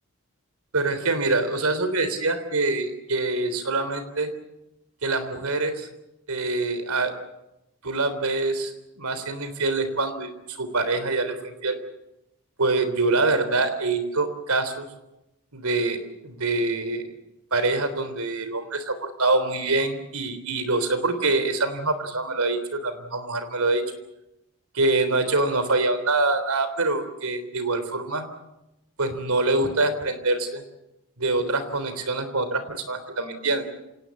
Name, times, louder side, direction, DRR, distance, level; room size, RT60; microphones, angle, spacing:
voice 1, 0.7-4.3 5.0-5.9 6.3-7.1 7.8-11.8 12.6-14.9 15.5-17.0 17.5-23.8 24.7-28.3 29.0-30.6 31.2-33.6, right 2 dB, 80° right, 11 dB, 3.5 m, -25 dB
26.5 x 18.5 x 8.4 m, 0.91 s
head